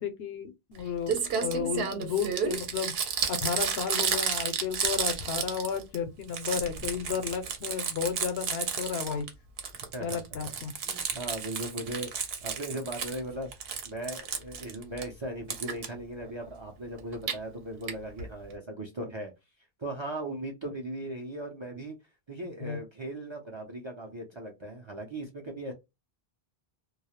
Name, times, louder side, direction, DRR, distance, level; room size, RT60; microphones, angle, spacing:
voice 1, 0.0-2.9 3.3-9.3 10.0-10.7 22.6-22.8, left 7 dB, 80° left, 0.8 m, -33 dB
Crumpling crinkling, 0.7-0.8 1.1-6.0 6.2-9.3 9.6-13.2 13.5-15.0 15.5-15.9 17.0-17.3 17.9-18.0 18.2-18.3 18.5-18.6, right 6 dB, 75° right, 0.8 m, -32 dB
voice 2, 9.9-10.4 10.8-13.5 13.8-19.3 19.8-22.0 22.3-25.7, right 1 dB, 40° right, 0.4 m, -38 dB
2.3 x 2.0 x 2.8 m
omnidirectional pair, 1.0 m